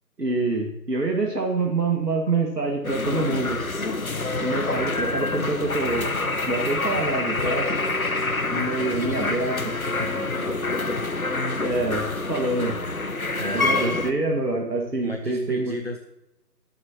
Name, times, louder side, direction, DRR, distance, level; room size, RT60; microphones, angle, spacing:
voice 1, 0.2-3.6 4.4-6.1 6.5-7.7 8.5-9.7 11.6-12.8 13.5-15.8, right 3 dB, 75° right, 1 dB, 2.1 m, -26 dB
sound 1, 2.8-14.1, left 3 dB, 60° left, 1.1 m, -27 dB
voice 2, 9.9-10.5 13.4-14.0 15.0-16.0, left 1 dB, 40° right, 5 dB, 0.7 m, -33 dB
21.5 x 8.0 x 2.9 m, 0.90 s
figure-of-eight pair, 175°, 49 cm